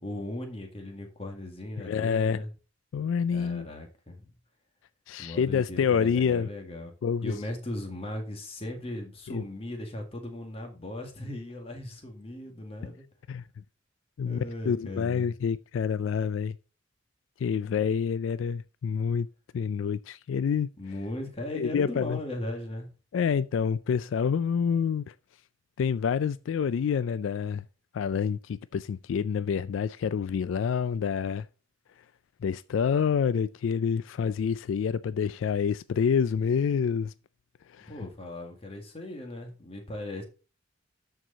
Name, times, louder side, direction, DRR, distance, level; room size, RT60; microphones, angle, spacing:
voice 1, 0.0-2.5 3.3-4.3 5.2-6.9 7.2-13.1 14.2-15.3 20.8-22.9 37.9-40.2, left 1 dB, 30° left, 1.9 m, -38 dB
voice 2, 1.8-2.4 2.9-3.7 5.1-6.5 7.0-7.3 9.3-9.4 13.3-13.4 14.2-14.4 14.7-16.6 17.4-19.3 19.5-20.7 21.5-22.2 23.1-25.1 25.8-27.6 27.9-31.5 32.4-37.1 37.7-37.9, left 6 dB, 75° left, 0.3 m, -27 dB
12.5 x 4.7 x 3.9 m
head